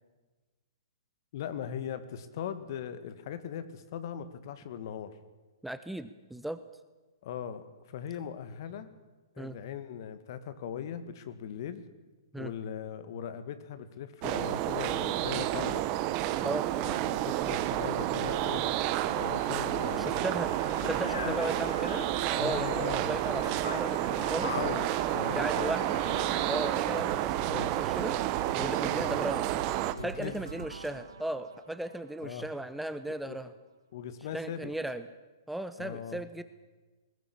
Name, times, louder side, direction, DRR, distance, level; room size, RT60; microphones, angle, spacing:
voice 1, 1.3-5.1 7.2-8.9 9.4-11.8 12.4-15.9 16.8-18.6 19.1-20.3 20.8-20.9 21.3-21.6 22.3-23.1 24.4-25.8 27.5-27.7 28.8-29.2 29.9-30.3 32.2-32.5 33.1-33.4 33.9-34.7 35.8-36.2, left 8 dB, 55° left, 12 dB, 2.1 m, -39 dB
voice 2, 5.6-6.6 9.4-9.6 12.3-12.5 16.4-16.7 20.0-20.5 20.9-22.1 22.4-24.6 25.3-26.0 26.5-28.2 28.5-29.5 30.0-33.5 34.3-35.1 35.5-36.4, right 1 dB, 5° right, 11 dB, 1.0 m, -36 dB
sound 1, 14.2-29.9, right 14 dB, 35° right, 1.3 m, -30 dB
sound 2, 17.5-26.8, left 5 dB, 75° left, 2.8 m, -43 dB
sound 3, 27.0-32.9, right 5 dB, 80° right, 2.9 m, -45 dB
21.0 x 17.5 x 8.8 m, 1.2 s
hypercardioid pair, 120°, 2 cm